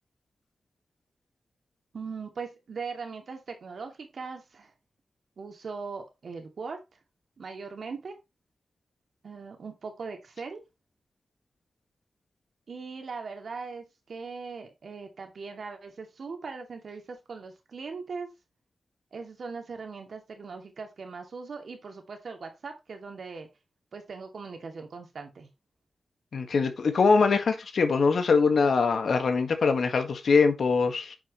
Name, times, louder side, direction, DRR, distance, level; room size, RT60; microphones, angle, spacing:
voice 1, 1.9-4.7 5.4-6.8 7.4-8.2 9.2-10.6 12.7-18.3 19.1-23.5 23.9-25.5, right 4 dB, 70° right, 2.4 m, -40 dB
voice 2, 26.3-31.2, left 4 dB, 75° left, 1.6 m, -23 dB
9.1 x 6.5 x 3.1 m
wide cardioid pair, 100°, 0 cm